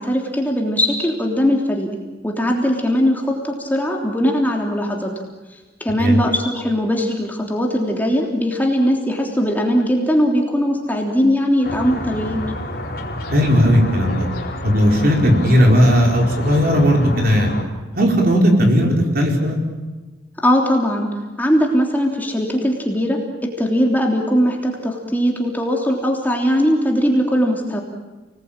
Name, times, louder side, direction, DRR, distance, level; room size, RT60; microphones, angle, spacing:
voice 1, 0.0-1.9 2.2-5.1 5.8-12.4 20.4-27.8, equal, 10° left, 0 dB, 3.2 m, -19 dB
sound 1, 11.6-17.6, left 1 dB, 55° left, 4.1 m, -29 dB
voice 2, 13.3-14.3 14.6-17.5 18.0-19.6, equal, 50° right, 1 dB, 4.9 m, -16 dB
30.0 x 20.0 x 8.9 m, 1.3 s
head